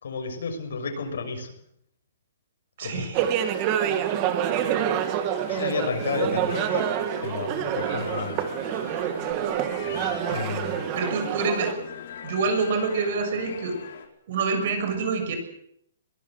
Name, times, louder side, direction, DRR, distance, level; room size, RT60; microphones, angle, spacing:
voice 1, 0.0-1.5 2.8-3.3 5.5-6.9 7.2-9.2 10.3-10.8, left 5 dB, 80° left, 5 dB, 6.6 m, -32 dB
voice 2, 2.8-3.2 10.9-11.8 12.2-13.8 14.3-15.4, right 4 dB, 45° right, 6 dB, 6.9 m, -26 dB
sound 1, 3.1-11.7, right 10 dB, 25° right, 1.8 m, -27 dB
sound 2, 3.8-14.0, left 7 dB, 55° left, 4.9 m, -42 dB
22.5 x 19.0 x 8.0 m, 0.73 s
hypercardioid pair, 170°, 0 cm